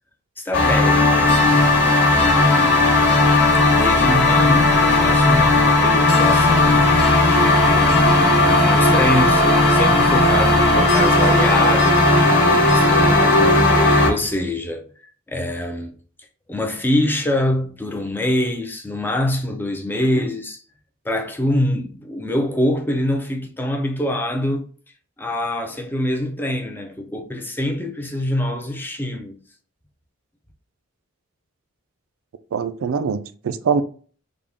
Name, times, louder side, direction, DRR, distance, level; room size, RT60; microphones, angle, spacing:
voice 1, 0.4-1.4 2.1-3.1 3.7-7.0 7.4-14.9 15.3-15.9 16.5-20.6 21.0-24.7 25.2-29.4, left 1 dB, 10° left, 0.4 m, -25 dB
sound 1, 0.5-14.1, left 2 dB, 55° left, 1.2 m, -15 dB
voice 2, 32.5-33.8, right 5 dB, 75° right, 0.4 m, -23 dB
3.7 x 2.2 x 3.4 m
head